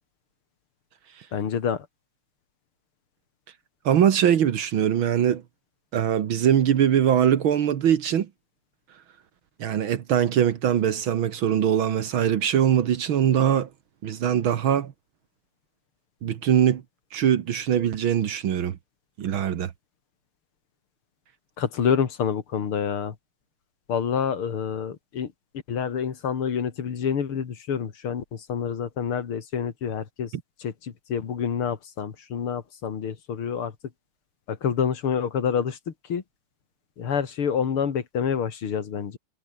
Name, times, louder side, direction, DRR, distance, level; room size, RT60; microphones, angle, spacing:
voice 1, 1.3-1.9 21.6-23.2 23.9-25.3 25.7-30.3 30.6-33.7 34.5-36.2 37.0-39.2, left 7 dB, 80° left, 3.0 m, -27 dB
voice 2, 3.9-5.4 5.9-8.3 9.6-13.7 14.0-14.9 16.2-16.8 17.1-18.8 19.2-19.7, right 9 dB, 70° right, 2.1 m, -22 dB
omnidirectional pair, 2.3 m